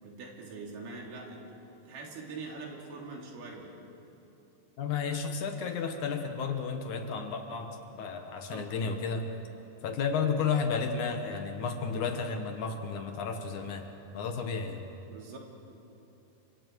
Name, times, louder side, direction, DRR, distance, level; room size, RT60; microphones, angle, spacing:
voice 1, 0.0-1.4 1.9-3.8 8.3-8.7 15.1-15.4, right 3 dB, 75° right, -1 dB, 4.8 m, -43 dB
voice 2, 4.8-9.3 9.8-13.9 14.1-14.9, left 5 dB, 65° left, 5 dB, 2.4 m, -32 dB
29.5 x 25.5 x 4.7 m, 2.9 s
omnidirectional pair, 4.4 m